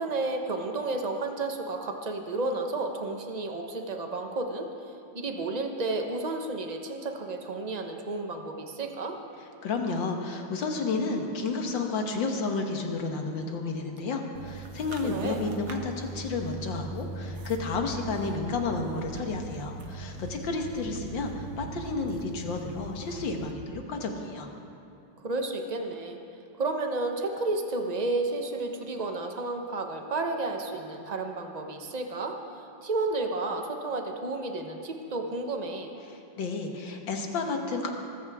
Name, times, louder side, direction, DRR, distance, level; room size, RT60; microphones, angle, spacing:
voice 1, 0.0-4.7 5.1-9.2 15.0-15.4 25.2-26.2 26.6-35.9, right 2 dB, 30° right, 4 dB, 0.8 m, -32 dB
voice 2, 9.6-24.5 36.1-37.9, left 3 dB, 65° left, 3 dB, 2.1 m, -31 dB
sound 1, 14.3-23.5, right 2 dB, 55° right, 1.4 m, -40 dB
23.5 x 14.5 x 3.6 m, 2.8 s
omnidirectional pair, 2.3 m